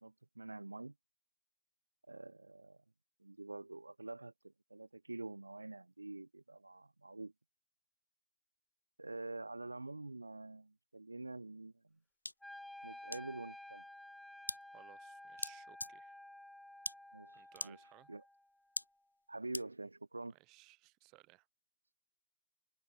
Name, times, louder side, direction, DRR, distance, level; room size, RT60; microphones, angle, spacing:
voice 1, 0.0-0.9 2.1-2.8 3.2-7.3 9.0-12.0 12.8-13.8 17.1-18.2 19.3-20.3, right 2 dB, 85° right, 2.1 m, -47 dB
sound 1, 12.3-12.4 13.1-13.2 14.5-14.6 15.4-15.5 15.8-15.9 16.9-17.0 17.6-17.7 18.8-18.9 19.5-19.6, left 2 dB, 85° left, 0.5 m, -39 dB
Wind instrument woodwind instrument, 12.4-18.5, left 1 dB, 5° left, 0.9 m, -53 dB
voice 2, 14.7-16.2 17.3-18.1 20.3-21.5, right 24 dB, 40° right, 5.3 m, -63 dB
figure-of-eight pair, 90°, 0 cm